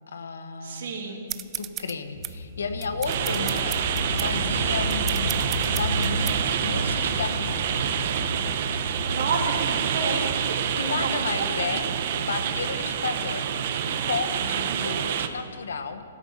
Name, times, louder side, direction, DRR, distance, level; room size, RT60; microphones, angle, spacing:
voice 1, 0.1-0.9 1.6-3.8 4.1-7.8 10.7-11.9 12.2-16.0, left 5 dB, 85° left, 9 dB, 1.1 m, -33 dB
voice 2, 0.6-1.2 9.1-10.7 11.0-11.4, right 4 dB, 65° right, 1 dB, 2.5 m, -30 dB
sound 1, 1.3-6.4, right 13 dB, 20° right, 0.4 m, -36 dB
sound 2, 2.1-14.5, left 1 dB, 40° left, 3.8 m, -34 dB
sound 3, 3.1-15.3, right 8 dB, 50° right, 0.8 m, -27 dB
13.5 x 12.5 x 5.6 m, 2.4 s
hypercardioid pair, 150°, 0 cm